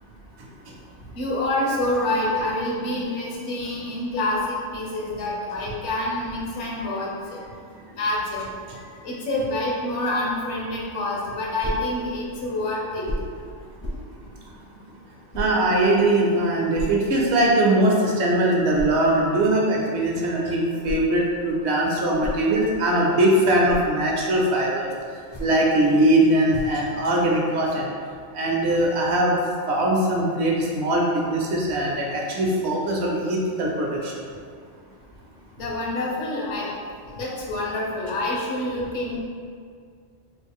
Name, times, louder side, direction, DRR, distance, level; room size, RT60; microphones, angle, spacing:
voice 1, 1.1-7.4 7.9-8.4 9.0-13.1 35.6-36.7 37.1-39.2, left 1 dB, 75° left, -4 dB, 1.1 m, -27 dB
sound 1, 11.6-11.9 13.0-13.4 13.8-14.1 15.3-15.6 16.7-17.0 18.7-19.0 20.6-21.2 21.9-22.9 23.4-23.9 25.2-25.7 26.5-26.9, equal, 25° left, 0.4 m, -33 dB
voice 2, 15.3-24.9 25.4-27.9 28.3-29.4 29.7-34.1, right 1 dB, 65° right, -2 dB, 0.9 m, -21 dB
3.9 x 2.4 x 3.5 m, 2.1 s
omnidirectional pair, 1.3 m